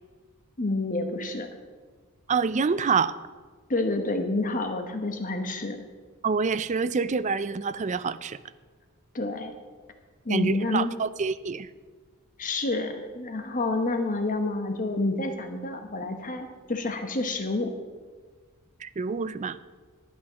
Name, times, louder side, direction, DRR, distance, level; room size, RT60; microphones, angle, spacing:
voice 1, 0.6-1.5 3.7-5.8 9.1-9.5 10.2-10.9 12.4-17.7, left 2 dB, 35° left, 6 dB, 1.0 m, -28 dB
voice 2, 2.3-3.2 6.2-8.4 10.3-11.7 18.8-19.6, right 5 dB, 35° right, 14 dB, 0.4 m, -27 dB
11.5 x 9.3 x 6.2 m, 1.5 s
head